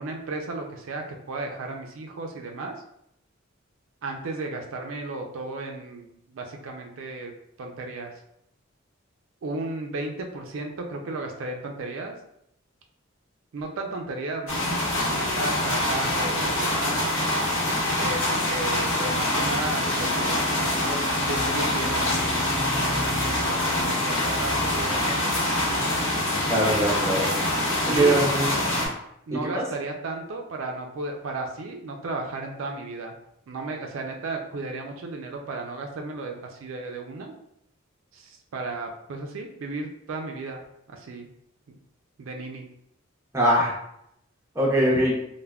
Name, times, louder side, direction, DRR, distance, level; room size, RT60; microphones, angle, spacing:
voice 1, 0.0-2.7 4.0-7.3 7.6-8.2 9.4-12.1 13.5-14.6 15.0-17.0 18.0-22.4 23.0-25.9 27.9-28.4 29.3-33.1 33.5-37.3 38.1-40.6 40.9-41.3 41.7-41.8 42.2-42.7 44.9-45.0, right 2 dB, 70° right, 2 dB, 0.4 m, -34 dB
sound 1, 14.5-28.9, left 1 dB, 70° left, 0.9 m, -25 dB
voice 2, 26.5-27.3 27.9-28.5 29.5-29.6 43.3-43.7 44.6-45.1, right 1 dB, 15° right, -4 dB, 0.6 m, -21 dB
3.3 x 2.1 x 2.2 m, 0.77 s
head